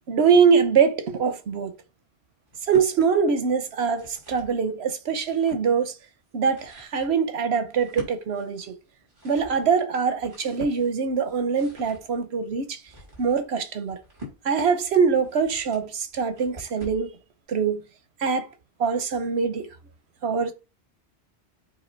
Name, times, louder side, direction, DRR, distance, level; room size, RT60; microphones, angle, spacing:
voice 1, 0.1-1.7 2.7-6.0 6.3-8.7 9.2-12.8 13.2-14.0 14.4-17.1 17.5-17.8 18.2-18.5 18.8-19.7 20.2-20.5, right 6 dB, 90° right, 1.1 m, -23 dB
sound 1, 2.5-2.9 3.7-4.6 5.0-5.7 6.3-17.1, equal, 55° right, 3.7 m, -45 dB
8.2 x 2.9 x 4.4 m
omnidirectional pair, 1.0 m